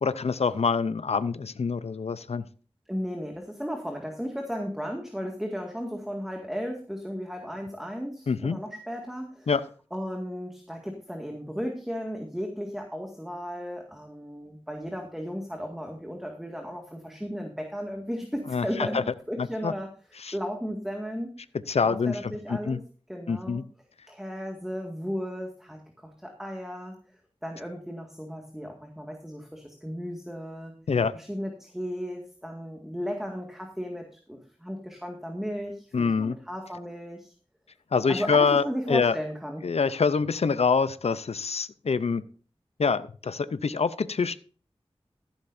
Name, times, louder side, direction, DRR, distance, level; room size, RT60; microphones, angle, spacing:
voice 1, 0.0-2.4 8.3-8.6 9.5-9.6 18.5-19.0 19.4-19.7 20.2-20.3 21.7-22.8 23.3-23.6 30.9-31.1 35.9-36.4 37.9-39.2 39.6-42.2 42.8-44.4, left 5 dB, 85° left, 14 dB, 0.6 m, -25 dB
voice 2, 2.9-9.5 9.9-19.0 19.3-19.9 20.3-21.3 21.9-22.8 23.1-23.6 24.1-27.0 27.4-30.7 31.1-37.3 38.1-39.6, equal, 5° right, 2 dB, 1.9 m, -35 dB
14.0 x 11.5 x 2.6 m, 0.39 s
wide cardioid pair, 70°, 10 cm